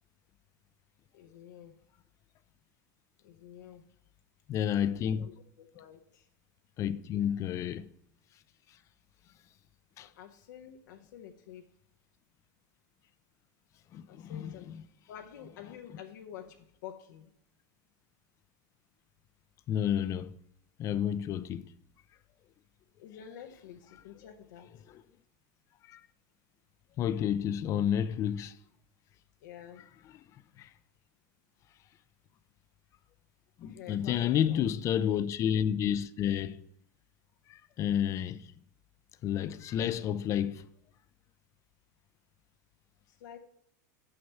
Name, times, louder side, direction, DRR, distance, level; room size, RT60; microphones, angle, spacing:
voice 1, 1.1-1.8 3.2-3.8 5.1-6.3 10.0-11.7 14.1-14.7 15.1-16.6 16.8-17.3 23.0-24.9 29.4-29.9 33.6-34.7 43.1-43.4, left 9 dB, 80° left, 0.7 m, -49 dB
voice 2, 4.5-5.3 6.8-7.9 10.0-10.1 13.9-14.8 19.7-20.3 20.8-21.7 24.9-25.0 25.8-26.0 27.0-28.6 30.6-30.7 33.6-36.7 37.5-38.5 39.2-40.7, left 9 dB, 30° left, 0.4 m, -30 dB
6.5 x 5.8 x 5.5 m
supercardioid pair, 140°, 10 cm